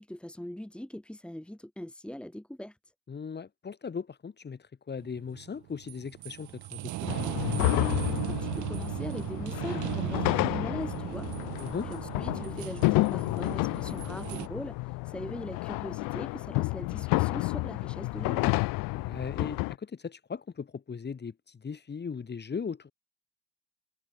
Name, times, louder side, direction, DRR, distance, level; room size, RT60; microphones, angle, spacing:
voice 1, 0.0-2.8 8.3-18.6, left 1 dB, 5° left, 3.5 m, -41 dB
voice 2, 3.1-7.4 11.6-11.9 18.9-22.9, left 6 dB, 30° left, 7.7 m, -38 dB
sound 1, 5.0-14.5, right 17 dB, 55° right, 1.3 m, -36 dB
sound 2, 7.1-19.7, left 25 dB, 65° left, 2.5 m, -30 dB
supercardioid pair, 85°, 36 cm